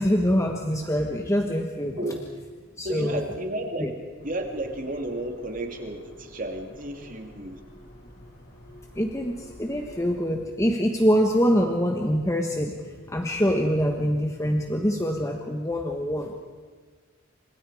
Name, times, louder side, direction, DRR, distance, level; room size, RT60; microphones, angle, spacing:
voice 1, 0.0-2.1 2.8-3.2 3.8-3.9 8.9-12.8 13.1-16.3, equal, 15° left, 2 dB, 1.3 m, -24 dB
voice 2, 2.8-3.9 4.2-7.6, right 1 dB, 40° right, 3 dB, 2.7 m, -32 dB
sound 1, 4.2-10.2, left 1 dB, 55° left, 5.8 m, -49 dB
29.0 x 26.5 x 5.0 m, 1.5 s
head